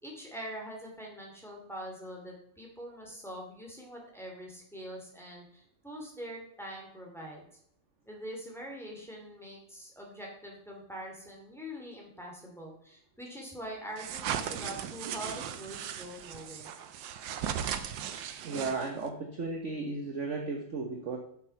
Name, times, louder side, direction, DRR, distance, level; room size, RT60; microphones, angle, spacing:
voice 1, 0.0-7.5 8.0-16.8, equal, ahead, -1 dB, 2.5 m, -44 dB
sound 1, 14.0-19.1, right 9 dB, 80° right, 1.5 m, -37 dB
voice 2, 18.4-21.2, right 3 dB, 45° right, 2 dB, 1.2 m, -35 dB
7.7 x 6.8 x 5.8 m, 0.68 s
omnidirectional pair, 2.0 m